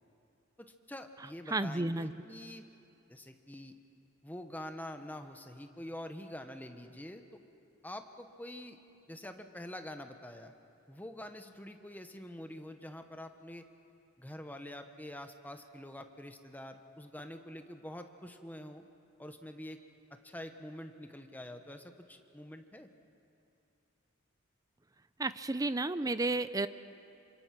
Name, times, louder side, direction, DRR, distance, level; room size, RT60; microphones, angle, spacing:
voice 1, 0.6-2.7 3.1-3.7 4.2-7.4 7.8-8.8 9.1-10.5 10.9-13.7 14.2-18.8 19.2-19.8 20.1-22.9, left 1 dB, 10° left, 6 dB, 1.1 m, -46 dB
voice 2, 1.5-2.1 25.2-26.7, right 2 dB, 15° right, 13 dB, 0.5 m, -32 dB
27.5 x 25.5 x 6.0 m, 2.7 s
head